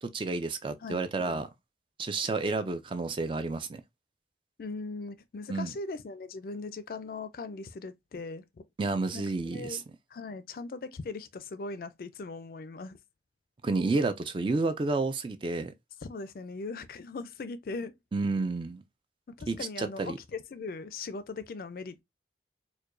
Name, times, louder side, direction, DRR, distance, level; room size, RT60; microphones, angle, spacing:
voice 1, 0.0-1.5 2.0-3.8 5.5-5.7 8.8-9.8 13.6-15.7 18.1-18.8 19.5-20.2, right 3 dB, 30° right, 0.3 m, -30 dB
voice 2, 0.8-1.4 4.6-8.6 9.1-9.2 9.5-9.8 10.1-13.0 16.0-17.9 19.4-22.0, left 3 dB, 55° left, 0.4 m, -39 dB
4.5 x 2.2 x 2.5 m
head